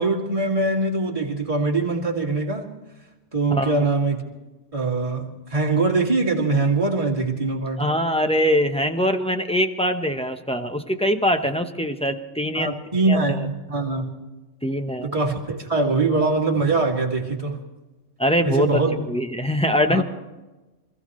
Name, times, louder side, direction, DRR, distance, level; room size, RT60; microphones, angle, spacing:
voice 1, 0.0-2.7 3.3-4.2 4.7-7.9 12.5-14.2 15.0-17.6 18.4-18.9 19.9-20.0, right 3 dB, 30° right, -2 dB, 2.5 m, -23 dB
voice 2, 7.8-12.7 13.1-13.2 14.6-15.1 18.2-18.8 19.1-20.0, equal, 5° left, 6 dB, 0.8 m, -22 dB
26.5 x 15.5 x 3.2 m, 1.1 s
omnidirectional pair, 1.3 m